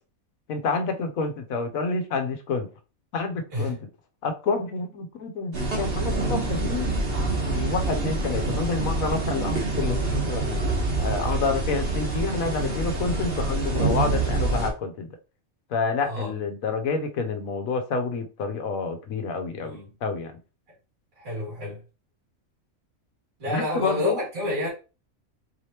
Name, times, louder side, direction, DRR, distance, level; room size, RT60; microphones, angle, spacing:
voice 1, 0.5-2.7 3.1-3.9 4.2-6.9 7.4-10.6 11.0-15.1 15.7-20.3 23.5-24.2, left 4 dB, 80° left, 1.2 m, -28 dB
sound 1, 5.5-14.7, right 3 dB, 45° right, 1.2 m, -26 dB
voice 2, 16.0-16.3 19.6-19.9 21.2-21.8 23.4-24.7, left 1 dB, 75° right, 2.7 m, -29 dB
4.5 x 3.2 x 2.8 m
omnidirectional pair, 1.4 m